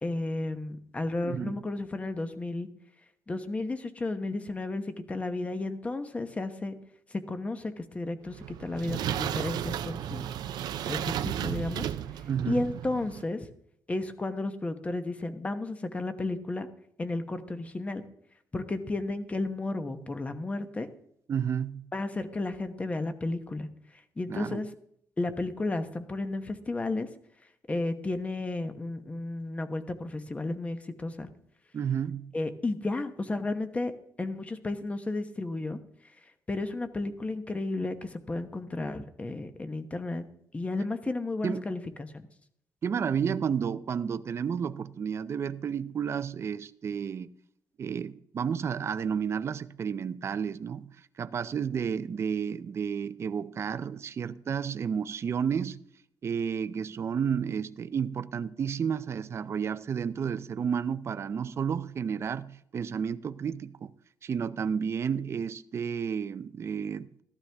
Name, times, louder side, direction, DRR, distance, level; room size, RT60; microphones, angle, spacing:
voice 1, 0.0-2.7 3.3-6.8 7.1-10.3 10.9-11.9 12.5-13.5 13.9-16.7 17.0-18.0 18.5-20.9 21.9-24.7 25.2-27.1 27.7-31.3 32.3-33.9 34.2-35.8 36.0-36.1 36.5-40.2 40.5-42.3, left 2 dB, 20° left, 1.0 m, -33 dB
voice 2, 1.2-1.6 12.3-12.7 21.3-21.9 24.3-24.6 31.7-32.3 41.4-41.6 42.8-47.3 47.8-50.9 51.2-55.8 56.2-63.9 64.2-67.2, right 7 dB, 40° right, 0.5 m, -31 dB
sound 1, 8.3-13.2, right 10 dB, 85° right, 0.6 m, -34 dB
14.5 x 12.0 x 3.5 m
cardioid pair, 140°, 7 cm